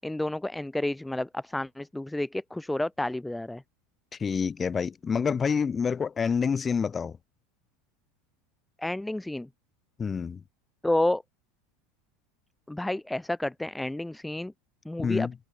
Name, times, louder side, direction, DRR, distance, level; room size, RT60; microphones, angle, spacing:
voice 1, 0.0-3.6 8.8-9.5 10.8-11.2 12.7-14.5 14.8-15.3, left 1 dB, 5° left, 5.8 m, -30 dB
voice 2, 4.2-7.2 10.0-10.4 15.0-15.3, left 6 dB, 25° left, 2.8 m, -27 dB
hypercardioid pair, 95°, 0 cm